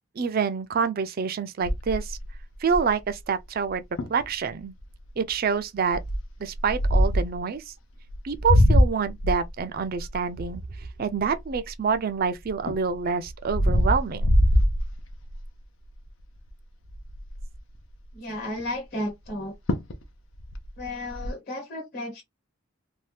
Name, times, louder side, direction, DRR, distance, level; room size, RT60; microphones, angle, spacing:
voice 1, 0.2-2.2 2.6-3.8 4.1-4.7 5.2-6.0 6.4-7.7 8.2-10.6 11.0-14.4, right 6 dB, 50° right, 0.4 m, -27 dB
sound 1, 1.6-3.1 3.7-3.8 4.0-4.2 4.8-5.1 5.9-7.4 8.1-12.0 12.4-15.5 15.9-16.2 16.5-16.6 16.8-17.6 19.3-19.4 19.7-20.0 20.3-21.3, equal, 75° left, 0.6 m, -23 dB
voice 2, 18.1-19.5 20.8-22.2, left 1 dB, 50° left, 1.2 m, -33 dB
2.7 x 2.2 x 3.2 m
head